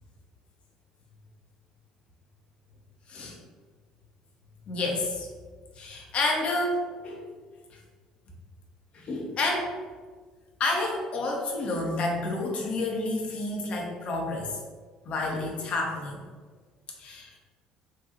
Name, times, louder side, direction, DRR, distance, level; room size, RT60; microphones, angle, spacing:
voice 1, 4.7-5.3 5.8-6.8 7.0-7.3 8.9-9.7 10.6-14.6 15.1-16.2 17.0-17.3, left 2 dB, 45° left, -1 dB, 0.7 m, -29 dB
3.8 x 2.3 x 2.7 m, 1.5 s
figure-of-eight pair, 55°, 3 cm